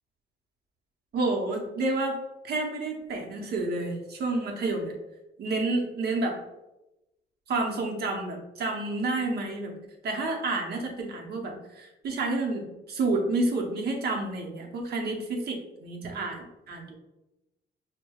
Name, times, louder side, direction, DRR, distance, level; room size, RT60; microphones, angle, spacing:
voice 1, 1.1-2.2 2.4-4.9 5.4-6.4 7.5-9.7 10.0-16.4 16.7-17.0, right 2 dB, 60° right, 1 dB, 0.8 m, -29 dB
6.3 x 2.2 x 2.3 m, 0.97 s
cardioid pair, 140°, 19 cm